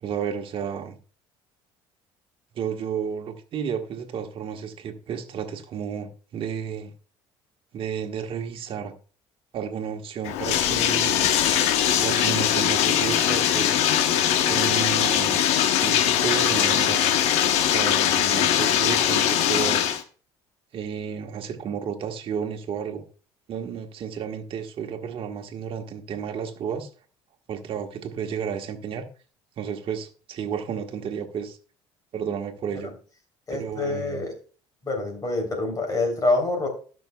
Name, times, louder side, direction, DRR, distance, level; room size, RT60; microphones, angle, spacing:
voice 1, 0.0-1.0 2.5-6.9 7.7-8.9 9.5-11.3 12.0-13.7 14.4-15.4 15.8-17.0 17.6-19.9 20.7-23.0 23.5-26.9 27.5-29.1 29.6-31.6 32.1-32.9 33.5-34.3, right 7 dB, 50° right, 1.5 m, -32 dB
Bathtub (filling or washing), 10.2-20.0, left 10 dB, 75° left, 1.0 m, -21 dB
voice 2, 33.5-34.3 34.8-36.7, left 2 dB, 30° left, 3.5 m, -26 dB
18.5 x 6.2 x 2.3 m
supercardioid pair, 90°, 11 cm